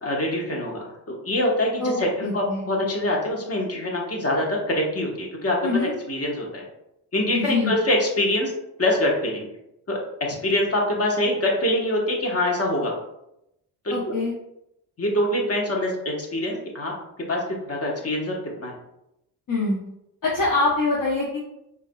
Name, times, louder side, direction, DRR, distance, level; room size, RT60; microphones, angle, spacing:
voice 1, 0.0-6.6 7.1-8.5 8.8-9.5 9.9-12.9 13.8-14.1 15.0-16.9 17.3-18.7, left 1 dB, 35° left, -1 dB, 1.2 m, -24 dB
voice 2, 1.8-2.6 5.6-6.0 7.3-7.7 13.9-14.3 19.5-19.8 20.2-21.4, left 3 dB, 50° left, -4 dB, 0.9 m, -24 dB
4.6 x 2.7 x 2.3 m, 0.82 s
supercardioid pair, 55°, 42 cm